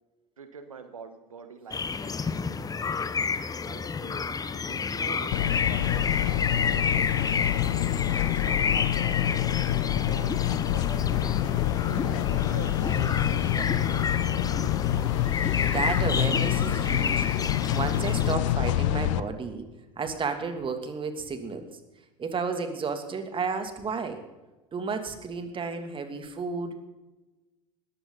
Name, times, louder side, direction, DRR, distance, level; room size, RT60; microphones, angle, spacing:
voice 1, 0.4-3.0 3.6-4.2 4.5-7.0 7.4-9.4 10.0-11.6 12.0-13.1 13.5-14.3, right 5 dB, 90° right, 9 dB, 1.3 m, -45 dB
sound 1, 1.7-18.4, left 5 dB, 20° left, 1.0 m, -30 dB
sound 2, 5.3-19.2, left 13 dB, 65° left, 0.8 m, -27 dB
voice 2, 15.7-17.3 17.7-19.6 20.0-21.7 22.2-24.2 24.7-26.8, right 5 dB, 30° right, 7 dB, 2.6 m, -32 dB
19.5 x 15.0 x 4.0 m, 1.1 s
hypercardioid pair, 75°, 17 cm